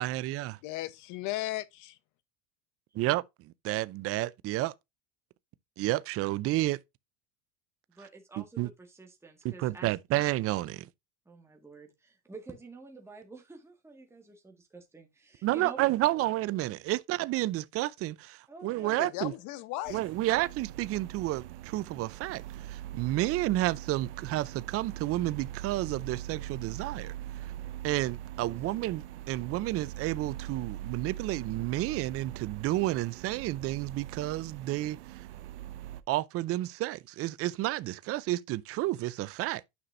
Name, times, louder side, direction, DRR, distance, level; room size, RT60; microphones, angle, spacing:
voice 1, 0.0-0.6 2.9-3.2 3.6-4.7 5.8-6.8 8.4-8.7 9.4-10.9 15.4-19.3 19.9-22.4 22.7-27.1 27.8-35.2 36.1-39.6, right 16 dB, 45° right, 0.6 m, -31 dB
voice 2, 0.6-2.0 18.8-20.0, left 16 dB, 60° left, 1.0 m, -36 dB
voice 3, 7.9-10.0 11.3-16.2 18.5-19.1 28.5-28.8, right 4 dB, 10° right, 1.8 m, -49 dB
sound 1, 19.8-36.0, right 13 dB, 90° right, 0.8 m, -42 dB
9.7 x 5.8 x 2.6 m
supercardioid pair, 115°, 33 cm